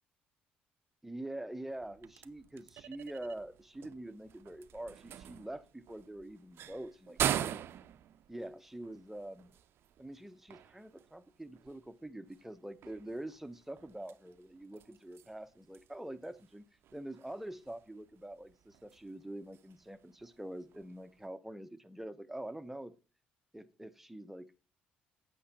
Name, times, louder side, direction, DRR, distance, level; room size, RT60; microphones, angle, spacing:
voice 1, 1.0-7.6 8.3-9.5 10.0-16.6 16.9-22.9 23.5-24.6, right 1 dB, 5° right, 0.9 m, -45 dB
sound 1, 1.7-21.3, right 10 dB, 60° right, 0.6 m, -44 dB
8.5 x 6.1 x 5.6 m
hypercardioid pair, 55°, 4 cm